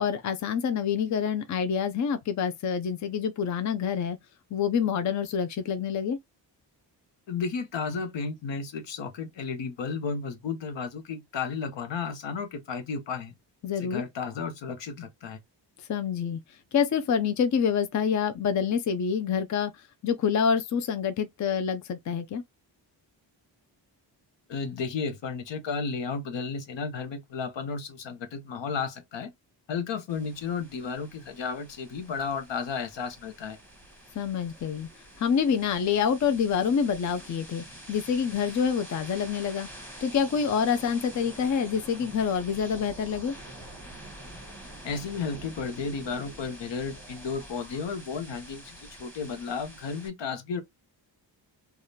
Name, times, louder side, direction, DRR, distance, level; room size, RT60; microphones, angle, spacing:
voice 1, 0.0-4.2 4.5-6.2 13.6-14.0 15.9-22.4 34.2-34.9 35.2-39.7 40.0-43.3, left 7 dB, 40° left, 0.5 m, -27 dB
voice 2, 7.3-13.3 13.8-15.4 24.5-29.3 29.7-33.6 44.8-50.6, left 5 dB, 75° left, 0.9 m, -33 dB
sound 1, 30.1-50.1, right 1 dB, 5° left, 1.1 m, -46 dB
3.3 x 2.4 x 2.7 m
wide cardioid pair, 140°, 44 cm